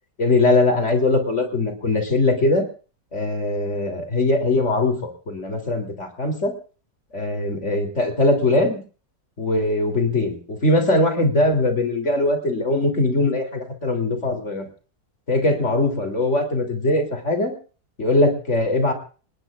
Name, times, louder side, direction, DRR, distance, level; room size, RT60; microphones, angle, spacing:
voice 1, 0.2-2.7 3.1-6.5 7.1-8.8 9.4-14.6 15.3-17.5 18.0-18.9, left 2 dB, 45° left, 4 dB, 3.6 m, -21 dB
26.5 x 20.5 x 2.5 m, 0.38 s
omnidirectional pair, 1.7 m